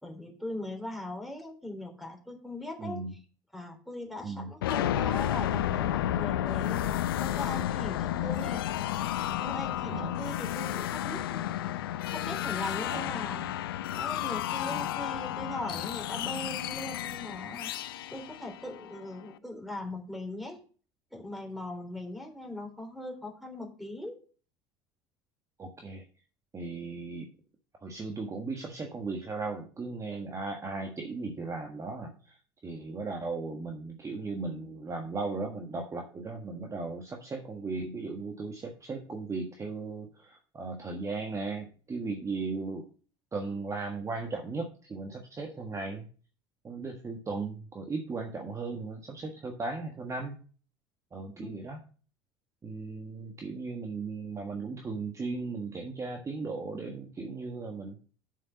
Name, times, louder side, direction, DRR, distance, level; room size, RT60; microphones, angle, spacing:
voice 1, 0.0-3.0 3.5-9.0 9.2-11.5 12.1-13.5 13.9-17.7 18.1-20.6 21.1-24.2 51.3-51.5, left 1 dB, ahead, 3 dB, 3.4 m, -40 dB
voice 2, 2.8-3.1 4.2-4.5 9.9-10.1 12.9-13.2 14.6-14.8 15.8-15.9 25.6-26.0 26.5-27.3 27.8-32.4 32.6-42.8 43.3-46.1 46.6-50.4 51.1-51.8 52.6-58.0, right 3 dB, 25° right, 3 dB, 1.5 m, -37 dB
sound 1, 4.6-19.3, left 12 dB, 85° left, 0.5 m, -32 dB
7.4 x 6.8 x 5.7 m, 0.40 s
hypercardioid pair, 75°, 12 cm